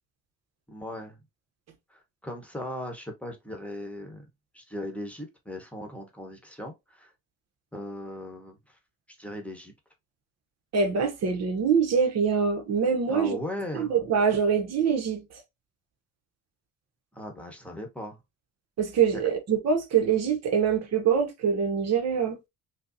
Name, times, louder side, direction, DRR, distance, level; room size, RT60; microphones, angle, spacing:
voice 1, 0.7-1.2 1.9-4.2 4.5-7.1 7.7-8.8 9.1-9.7 13.1-13.9 17.1-18.2, left 1 dB, 5° left, 1.0 m, -38 dB
voice 2, 10.7-13.4 13.7-15.2 18.8-22.4, right 6 dB, 60° right, 0.8 m, -24 dB
5.0 x 2.0 x 2.6 m
cardioid pair, 90°, 30 cm